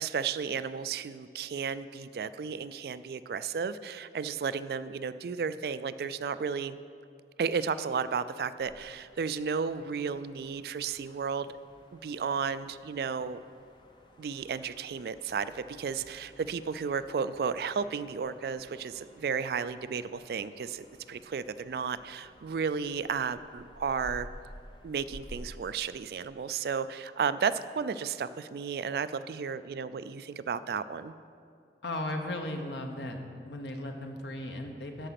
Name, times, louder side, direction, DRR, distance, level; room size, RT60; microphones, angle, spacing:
voice 1, 0.0-6.8 7.4-11.5 11.9-13.4 14.2-24.3 24.8-31.1, right 6 dB, 60° right, 14 dB, 0.3 m, -33 dB
sound 1, 8.6-25.6, equal, 25° left, 0.6 m, -53 dB
voice 2, 31.8-33.2 33.5-35.1, left 1 dB, 85° left, 4 dB, 1.0 m, -36 dB
13.0 x 5.0 x 5.8 m, 2.4 s
head